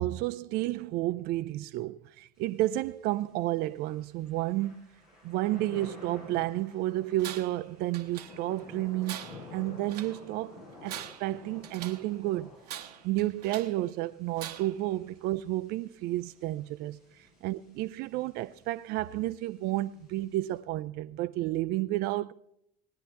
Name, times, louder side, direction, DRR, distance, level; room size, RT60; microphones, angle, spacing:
voice 1, 0.0-4.9 5.2-9.2 9.5-12.5 13.0-17.0 17.4-22.3, right 16 dB, 55° right, 0.4 m, -31 dB
Thunder / Rain, 2.4-20.6, left 3 dB, 80° left, 5.1 m, -53 dB
Tools, 7.2-7.6 7.9-8.6 9.0-10.2 10.7-12.1 12.6-13.8 14.4-14.9, right 11 dB, 80° right, 1.0 m, -43 dB
18.5 x 10.0 x 3.4 m
hypercardioid pair, 70°, 20 cm